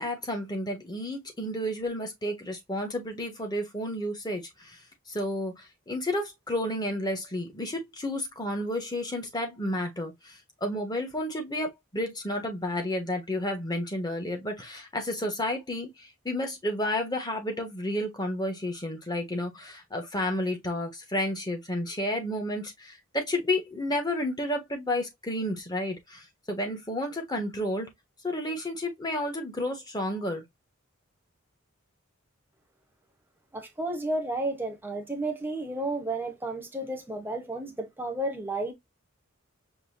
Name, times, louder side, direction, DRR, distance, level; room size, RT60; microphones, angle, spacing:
voice 1, 0.0-4.8 5.1-27.9 28.2-30.4, left 1 dB, 20° left, 1.3 m, -31 dB
voice 2, 33.5-38.7, right 2 dB, 10° right, 1.0 m, -32 dB
5.4 x 2.8 x 2.6 m
head